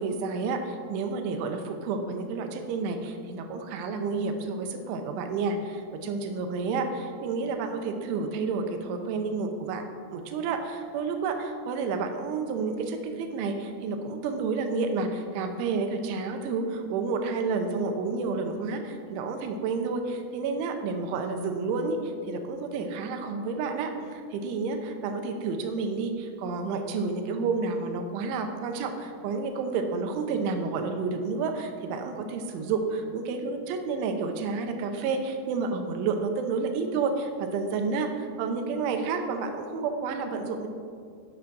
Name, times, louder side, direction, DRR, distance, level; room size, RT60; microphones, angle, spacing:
voice 1, 0.0-9.8 10.1-40.7, right 4 dB, 90° right, 5 dB, 3.2 m, -30 dB
11.5 x 6.3 x 6.1 m, 2.2 s
omnidirectional pair, 5.4 m